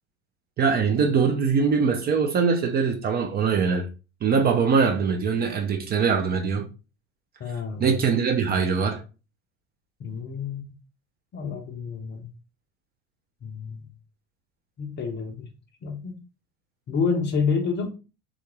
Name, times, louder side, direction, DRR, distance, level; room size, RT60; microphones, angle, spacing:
voice 1, 0.6-3.9 4.2-6.7 7.8-9.0, right 5 dB, 25° right, 0.5 m, -22 dB
voice 2, 7.4-7.9 10.0-10.7 11.3-12.3 13.4-13.9 14.8-15.5 15.8-16.1 16.9-17.9, left 5 dB, 25° left, 0.6 m, -28 dB
3.5 x 2.3 x 2.9 m
figure-of-eight pair, 70°, 40 cm